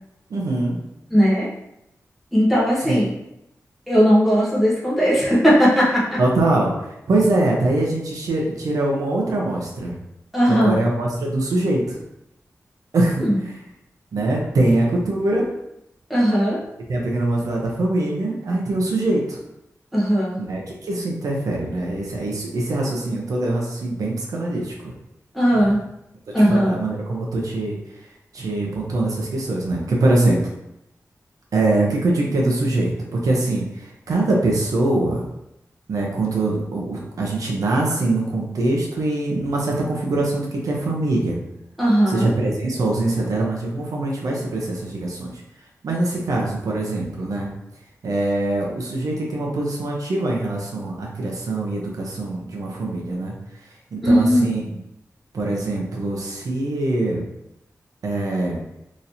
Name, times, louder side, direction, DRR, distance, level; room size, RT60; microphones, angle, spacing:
voice 1, 0.3-0.8 2.8-3.0 6.2-6.7 7.1-9.9 10.5-12.0 12.9-13.6 14.1-15.5 16.9-19.4 20.4-24.7 25.5-25.7 26.5-27.8 28.3-30.4 31.5-35.2 35.9-41.4 42.1-45.3 45.8-47.5 48.0-53.3 53.9-54.6 55.3-57.2 58.0-58.6, right 2 dB, 85° right, -2 dB, 0.8 m, -23 dB
voice 2, 1.1-1.5 2.3-3.1 3.9-6.2 10.3-10.8 13.2-13.4 16.1-16.6 19.9-20.4 25.3-25.8 26.3-26.8 41.8-42.3 54.0-54.4, equal, ahead, -8 dB, 1.0 m, -17 dB
4.1 x 3.1 x 2.7 m, 0.84 s
wide cardioid pair, 150°, 6 cm